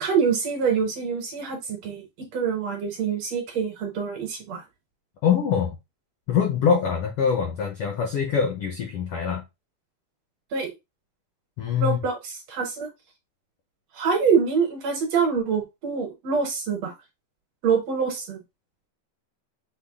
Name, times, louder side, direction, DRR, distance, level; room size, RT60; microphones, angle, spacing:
voice 1, 0.0-4.6 10.5-10.7 11.7-12.9 13.9-16.9 17.6-18.4, right 6 dB, 65° right, 1.9 m, -25 dB
voice 2, 5.2-5.8 6.3-9.4 11.6-12.0, left 7 dB, 80° left, 1.3 m, -24 dB
6.3 x 2.3 x 3.5 m
omnidirectional pair, 3.7 m